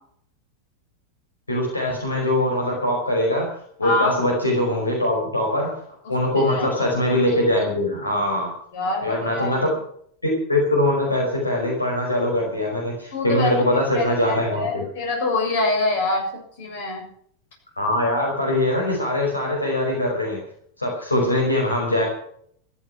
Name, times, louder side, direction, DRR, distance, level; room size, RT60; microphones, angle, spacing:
voice 1, 1.5-3.5 3.8-5.7 6.1-8.5 9.0-9.7 10.2-14.8 17.8-20.4 20.8-22.1, left 1 dB, 80° left, -1 dB, 5.0 m, -22 dB
voice 2, 3.8-4.2 6.1-6.7 8.7-9.6 13.1-13.5 13.9-17.1, left 2 dB, 55° left, 2 dB, 7.2 m, -25 dB
14.5 x 13.5 x 6.0 m, 0.64 s
figure-of-eight pair, 90°, 0 cm